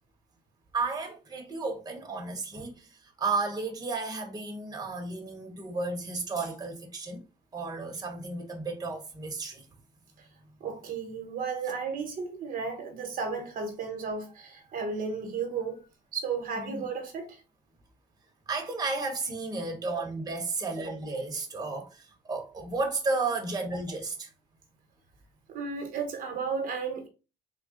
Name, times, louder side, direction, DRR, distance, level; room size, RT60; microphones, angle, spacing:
voice 1, 0.7-7.2 7.5-9.7 16.6-16.9 18.5-24.3, right 3 dB, 20° right, 1.1 m, -33 dB
voice 2, 10.6-15.9 16.1-17.4 25.5-27.1, right 5 dB, 60° right, 1.0 m, -34 dB
3.6 x 2.2 x 3.6 m
cardioid pair, 110°, 17 cm